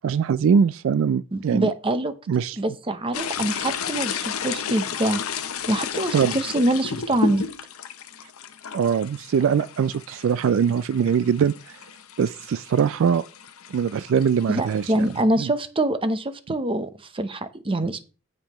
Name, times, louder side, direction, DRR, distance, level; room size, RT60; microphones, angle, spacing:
voice 1, 0.0-1.7 2.3-2.6 6.1-6.4 8.7-11.8 12.2-13.3 13.7-15.1 15.4-15.5, right 7 dB, 65° right, 0.3 m, -22 dB
voice 2, 1.3-2.1 2.6-5.2 5.7-7.4 14.5-18.0, right 1 dB, 25° right, 0.8 m, -24 dB
sound 1, 3.1-15.2, left 7 dB, 90° left, 0.8 m, -33 dB
15.5 x 5.4 x 3.1 m
head